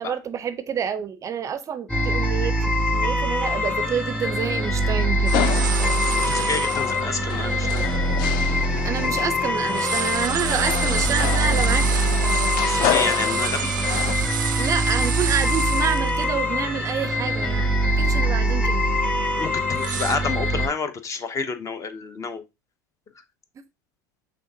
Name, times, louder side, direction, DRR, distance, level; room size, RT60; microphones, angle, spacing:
voice 1, 0.0-5.4 8.8-11.9 14.6-18.8, right 7 dB, 30° right, 0.5 m, -28 dB
sound 1, 1.9-20.7, equal, 10° left, 1.5 m, -23 dB
sound 2, 5.3-14.1, left 12 dB, 50° left, 0.4 m, -30 dB
sound 3, 5.3-7.0 7.6-7.7 8.3-9.3 9.6-16.2 16.6-16.7 17.1-17.5 17.9-18.2 18.8-20.2, right 10 dB, 90° right, 0.4 m, -30 dB
voice 2, 6.1-8.0 12.6-13.7 19.4-22.4, left 4 dB, 30° left, 0.8 m, -29 dB
5.6 x 3.4 x 2.7 m
hypercardioid pair, 85°, 10 cm